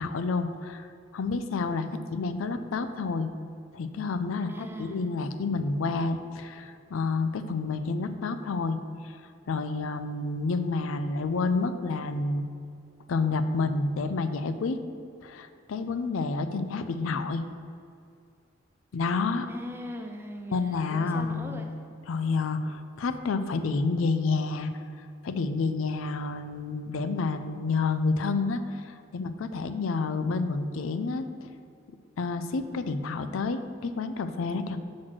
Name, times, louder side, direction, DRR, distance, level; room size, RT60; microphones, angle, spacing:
voice 1, 0.0-3.3 3.7-8.8 9.0-9.2 9.5-12.5 13.1-14.8 15.2-17.5 18.9-19.5 20.5-21.7 22.1-24.8 25.2-31.5 32.2-34.8, left 3 dB, 85° left, 10 dB, 0.4 m, -29 dB
voice 2, 4.4-5.1 19.5-21.7, equal, 10° right, 3 dB, 0.5 m, -40 dB
6.2 x 4.1 x 6.1 m, 2.4 s
head